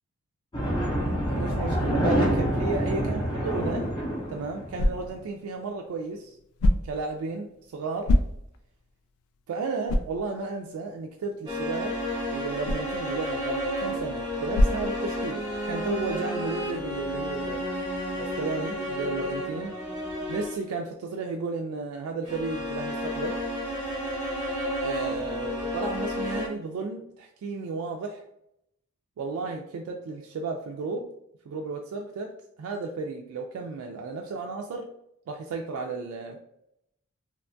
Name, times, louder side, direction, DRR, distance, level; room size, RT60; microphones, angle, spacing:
sound 1, 0.5-5.0, equal, 20° left, 0.5 m, -27 dB
voice 1, 1.3-3.9 4.3-6.4 6.8-8.1 9.5-12.0 12.3-17.7 18.1-19.7 20.3-23.4 24.8-28.2 29.2-31.1 31.5-34.9 35.3-36.4, right 3 dB, 85° right, 3 dB, 0.3 m, -33 dB
sound 2, 3.9-15.6, left 1 dB, 90° left, 0.3 m, -30 dB
sound 3, 11.5-20.7 22.2-26.5, equal, 20° right, 0.7 m, -31 dB
2.8 x 2.2 x 2.5 m, 0.79 s
head